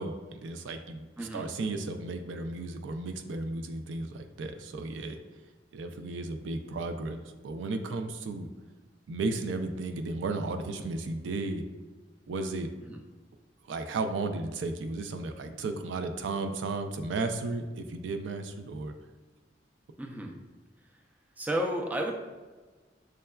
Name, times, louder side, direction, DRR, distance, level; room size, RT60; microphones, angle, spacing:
voice 1, 0.0-5.2 5.7-8.5 9.1-11.6 12.3-12.7 13.7-18.9, right 3 dB, 90° right, 7 dB, 0.4 m, -34 dB
voice 2, 20.0-20.3 21.4-22.1, equal, 10° right, 1 dB, 0.3 m, -32 dB
6.3 x 2.2 x 2.2 m, 1.3 s
head